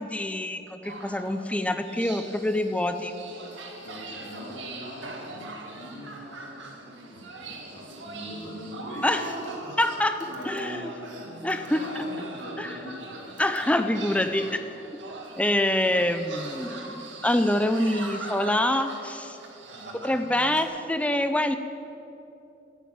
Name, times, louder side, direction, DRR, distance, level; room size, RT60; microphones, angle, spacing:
voice 1, 0.0-3.2 9.0-9.2 9.8-10.2 10.4-10.9 11.4-11.8 12.6-12.7 13.4-14.5 15.4-19.4 20.0-21.6, left 1 dB, 5° left, 8 dB, 0.5 m, -25 dB
sound 1, 0.8-20.6, right 3 dB, 70° right, 2.0 m, -41 dB
voice 2, 3.8-6.5 7.1-11.4 11.7-14.9 15.7-16.1 19.7-20.2, equal, 70° left, -3 dB, 3.5 m, -42 dB
11.5 x 9.3 x 8.8 m, 3.0 s
head